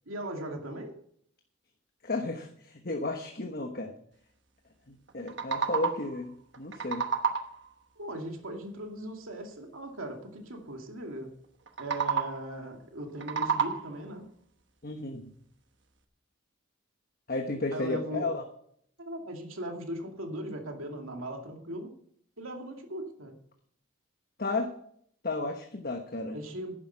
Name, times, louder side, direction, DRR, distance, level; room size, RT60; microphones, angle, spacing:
voice 1, 0.1-1.0 8.0-11.3 11.8-14.3 17.7-18.4 19.0-21.9 22.4-23.4 26.3-26.8, right 1 dB, 85° right, 3 dB, 2.4 m, -38 dB
voice 2, 2.0-3.9 4.9-7.1 14.8-15.3 17.3-18.4 24.4-24.7 25.2-26.3, left 2 dB, 45° left, 4 dB, 1.2 m, -33 dB
sound 1, 5.1-6.2 6.5-7.7 11.7-12.5 13.0-14.1, right 6 dB, 60° right, 1.2 m, -31 dB
11.0 x 10.0 x 5.8 m, 0.66 s
head